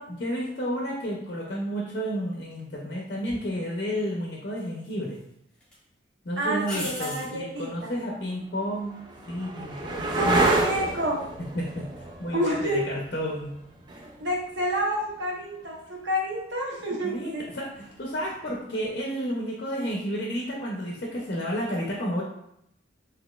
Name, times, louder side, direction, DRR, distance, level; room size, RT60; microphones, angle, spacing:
voice 1, 0.1-5.2 6.2-9.0 9.3-10.3 11.4-13.6 17.0-22.2, equal, 50° left, -2 dB, 0.5 m, -31 dB
sound 1, 3.3-3.4 4.6-5.2 5.6-5.7 6.6-7.3 10.4-10.8, left 1 dB, 5° left, 1.2 m, -36 dB
voice 2, 6.4-7.9 10.0-11.2 12.3-12.8 14.2-17.4, equal, 75° right, -2 dB, 0.8 m, -29 dB
sound 2, 8.0-15.6 18.0-18.5, right 2 dB, 25° right, 0.3 m, -30 dB
4.0 x 2.8 x 2.3 m, 0.76 s
head